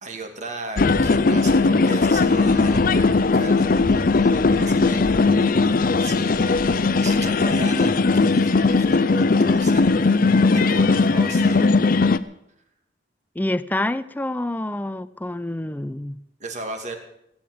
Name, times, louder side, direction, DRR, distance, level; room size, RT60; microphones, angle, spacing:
voice 1, 0.0-6.6 7.0-11.6 16.4-17.0, right 2 dB, 40° right, 2.2 m, -36 dB
sound 1, 0.8-12.2, left 3 dB, 50° left, 0.6 m, -18 dB
voice 2, 13.4-16.2, left 1 dB, 10° left, 0.5 m, -27 dB
17.0 x 8.8 x 7.7 m
head